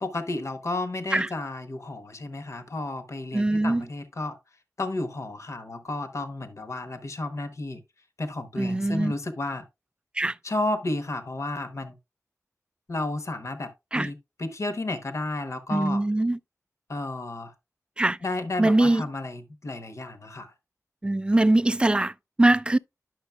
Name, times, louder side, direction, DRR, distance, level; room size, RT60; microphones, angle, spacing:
voice 1, 0.0-4.4 4.8-7.8 8.2-9.6 10.4-11.9 12.9-16.0 16.9-17.5 18.2-20.5, left 2 dB, 55° left, 0.9 m, -32 dB
voice 2, 3.3-3.9 8.6-9.1 10.1-10.4 13.9-14.1 15.7-16.4 18.0-18.2 18.6-19.0 21.0-22.8, right 2 dB, 15° right, 0.3 m, -22 dB
10.5 x 6.2 x 2.3 m
wide cardioid pair, 95°, 6 cm